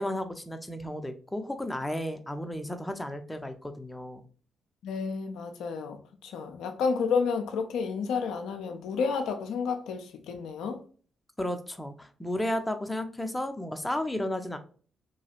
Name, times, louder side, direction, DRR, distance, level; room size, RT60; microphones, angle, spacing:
voice 1, 0.0-4.2 11.4-14.6, left 1 dB, 15° left, 0.6 m, -33 dB
voice 2, 4.8-10.8, left 5 dB, 75° left, 0.4 m, -31 dB
2.9 x 2.3 x 2.8 m
hypercardioid pair, 40°, 0 cm